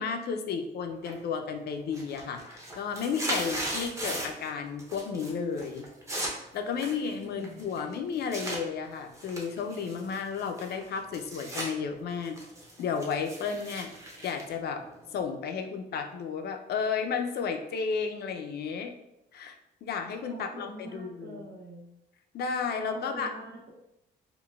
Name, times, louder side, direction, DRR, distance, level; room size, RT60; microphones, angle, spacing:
voice 1, 0.0-5.9 6.5-12.4 12.8-13.9 14.2-14.8 15.1-18.9 19.3-21.4 22.3-23.3, left 6 dB, 55° left, 6 dB, 0.4 m, -33 dB
sound 1, 1.1-1.5 1.8-4.5 4.8-5.3 5.6-8.6 9.1-11.7 12.1-15.2, right 1 dB, 15° right, 0.7 m, -37 dB
voice 2, 7.0-7.7 20.3-21.9 22.9-23.7, right 1 dB, 90° right, -3 dB, 1.0 m, -45 dB
3.8 x 2.2 x 2.3 m, 0.85 s
cardioid pair, 115°, 19 cm